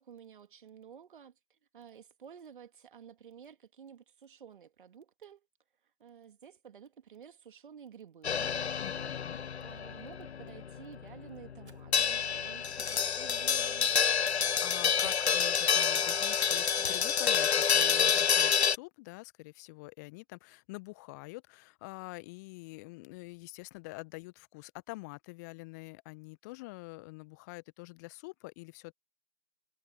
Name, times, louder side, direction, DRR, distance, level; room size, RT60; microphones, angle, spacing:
voice 1, 0.0-5.5 6.0-8.5 9.6-13.9, right 8 dB, 50° right, 2.9 m, -52 dB
sound 1, 8.2-18.8, left 7 dB, 75° left, 0.6 m, -28 dB
voice 2, 8.8-9.4 14.6-28.9, left 25 dB, 15° left, 0.9 m, -46 dB
sound 2, 11.6-11.9 13.3-13.5 14.9-15.3 16.7-17.1, right 2 dB, 85° right, 3.1 m, -52 dB
figure-of-eight pair, 135°, 33 cm